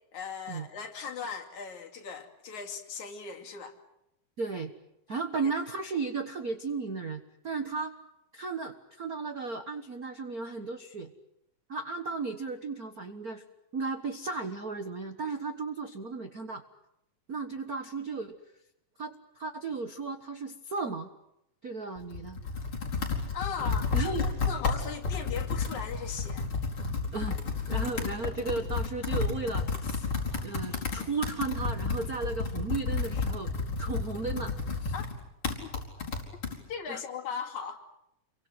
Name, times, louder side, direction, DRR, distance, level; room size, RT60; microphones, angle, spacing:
voice 1, 0.1-3.8 5.4-5.5 23.3-26.5 34.9-35.0 35.6-35.7 36.7-37.8, left 6 dB, 60° left, 4 dB, 3.8 m, -38 dB
voice 2, 4.4-4.7 5.1-7.9 8.3-11.1 11.7-13.4 13.7-16.6 17.3-18.4 19.0-21.1 21.6-22.4 23.9-24.3 27.1-27.4 27.7-30.1 30.4-33.5 33.8-34.5 34.8-34.9 36.9-37.0, right 4 dB, 90° right, 8 dB, 0.8 m, -35 dB
Computer keyboard, 22.0-36.6, left 4 dB, 35° left, 5.3 m, -32 dB
29.0 x 23.5 x 7.9 m, 0.83 s
omnidirectional pair, 3.9 m